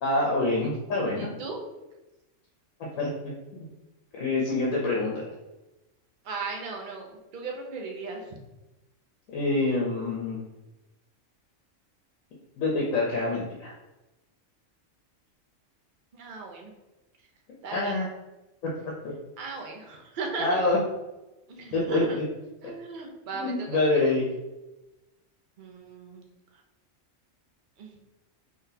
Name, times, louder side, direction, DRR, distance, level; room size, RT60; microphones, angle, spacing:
voice 1, 0.0-1.3 3.0-3.3 4.1-5.3 9.3-10.4 12.6-13.7 17.7-18.1 18.8-19.1 20.4-20.8 21.7-22.0 22.6-22.7 23.4-24.2, left 2 dB, 85° left, -4 dB, 1.2 m, -26 dB
voice 2, 1.2-1.7 6.2-8.4 16.1-16.7 17.6-18.0 19.4-20.7 21.5-22.2 22.6-23.9 25.6-26.3 27.8-28.0, right 3 dB, 50° right, 1 dB, 0.7 m, -37 dB
3.9 x 3.3 x 2.7 m, 1.0 s
omnidirectional pair, 1.4 m